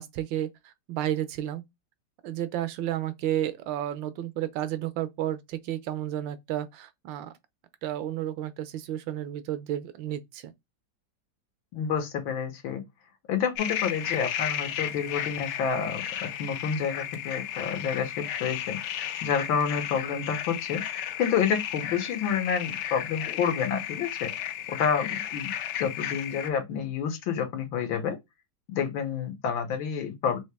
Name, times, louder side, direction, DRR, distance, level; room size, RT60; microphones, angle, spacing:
voice 1, 0.0-1.6 2.2-7.3 7.8-10.5, right 12 dB, 80° right, 1.3 m, -32 dB
voice 2, 11.7-12.8 13.3-18.8 19.2-20.8 21.2-24.3 24.7-25.5 25.8-28.2 28.7-30.4, left 7 dB, 90° left, 1.8 m, -29 dB
sound 1, 13.6-26.5, left 11 dB, 70° left, 1.1 m, -34 dB
4.0 x 2.8 x 3.3 m
omnidirectional pair, 2.1 m